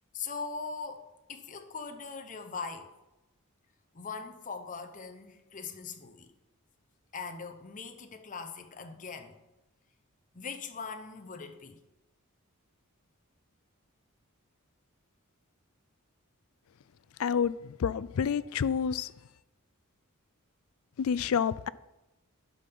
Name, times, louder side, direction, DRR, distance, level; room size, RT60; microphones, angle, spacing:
voice 1, 0.1-2.9 3.9-6.3 7.1-9.4 10.3-11.8, left 5 dB, 35° left, 0.8 m, -41 dB
voice 2, 17.2-19.1 21.0-21.7, left 7 dB, 70° left, 0.3 m, -29 dB
9.1 x 5.4 x 5.9 m
head